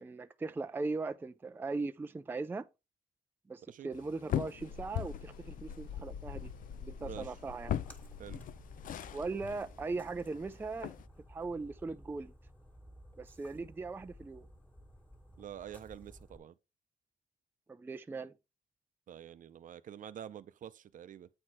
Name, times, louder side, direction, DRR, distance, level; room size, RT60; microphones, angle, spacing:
voice 1, 0.0-2.7 3.5-6.5 6.8-7.8 9.1-10.9 11.3-12.3 13.2-14.5 17.7-18.3, right 3 dB, 15° right, 0.4 m, -39 dB
sound 1, 3.9-11.1, left 11 dB, 60° left, 0.5 m, -41 dB
sound 2, 4.6-11.2, left 6 dB, 85° left, 1.9 m, -48 dB
voice 2, 7.0-7.4 8.2-8.4 15.4-16.6 19.1-21.3, right 9 dB, 60° right, 0.6 m, -47 dB
Splash splatter, 7.5-16.4, equal, 10° left, 1.6 m, -56 dB
8.8 x 4.3 x 4.8 m
wide cardioid pair, 155°, 16 cm